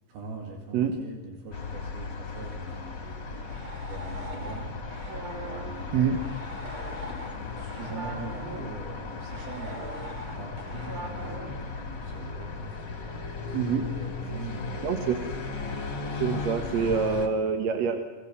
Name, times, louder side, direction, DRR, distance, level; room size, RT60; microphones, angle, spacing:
voice 1, 0.1-3.1 3.8-4.8 5.5-6.3 7.4-9.8 10.4-12.3 13.9-14.7 15.8-15.9 16.6-16.7, right 4 dB, 85° right, 1 dB, 4.4 m, -42 dB
sound 1, 1.5-17.3, left 4 dB, 30° left, 3.0 m, -36 dB
sound 2, 3.0-8.7 9.2-12.1 12.4-12.5 13.1-13.4, right 2 dB, 40° right, 3.5 m, -42 dB
voice 2, 5.9-6.2 13.5-13.9 14.8-15.2 16.2-18.0, right 6 dB, 55° right, 5 dB, 2.2 m, -26 dB
29.0 x 21.5 x 7.1 m, 1.2 s
omnidirectional pair, 4.2 m